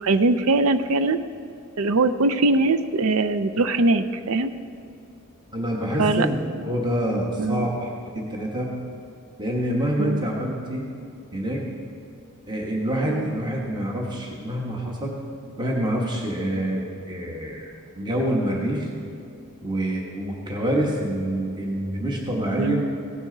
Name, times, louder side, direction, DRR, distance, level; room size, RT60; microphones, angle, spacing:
voice 1, 0.0-1.2 1.8-4.5 6.0-6.3 7.4-7.7 10.0-10.2 13.1-13.2 22.6-22.8, right 3 dB, 75° right, 10 dB, 0.5 m, -21 dB
voice 2, 5.5-6.4 6.6-8.8 9.4-10.9 11.3-11.6 12.5-15.2 15.6-17.6 17.9-18.9 19.6-22.8, right 1 dB, 20° right, -1 dB, 1.3 m, -26 dB
16.5 x 10.0 x 3.9 m, 2.7 s
head